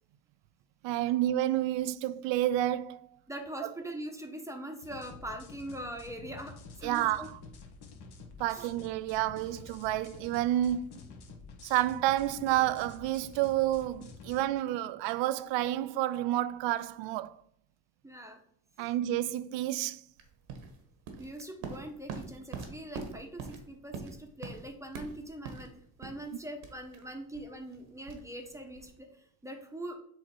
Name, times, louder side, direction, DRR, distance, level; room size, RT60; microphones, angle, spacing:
voice 1, 0.8-3.0 3.6-3.7 6.8-7.4 8.4-10.9 11.6-17.4 18.8-20.0, right 13 dB, 65° right, 0.5 m, -30 dB
voice 2, 3.3-7.3 8.5-8.7 18.0-18.4 21.2-25.7 26.0-30.0, right 1 dB, 5° right, 0.9 m, -42 dB
sound 1, 4.8-14.4, left 4 dB, 55° left, 1.2 m, -50 dB
sound 2, 20.2-29.0, right 5 dB, 80° right, 1.4 m, -44 dB
7.6 x 2.9 x 4.4 m
cardioid pair, 105°, 48 cm